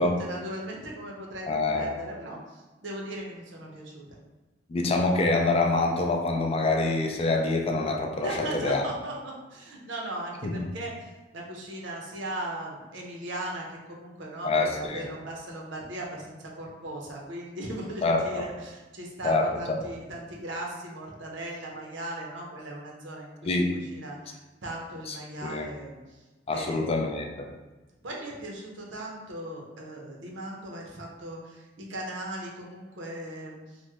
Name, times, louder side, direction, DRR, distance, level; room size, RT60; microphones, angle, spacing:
voice 1, 0.0-4.2 8.2-26.2 26.5-26.9 28.0-33.8, right 1 dB, 75° right, -1 dB, 0.7 m, -38 dB
voice 2, 1.5-1.9 4.7-8.8 10.4-10.5 14.4-15.1 18.0-18.4 19.2-19.5 23.5-23.7 25.1-25.2 25.4-25.7 26.5-27.5, left 2 dB, 30° left, 2 dB, 0.4 m, -26 dB
3.0 x 2.1 x 3.4 m, 1.2 s
head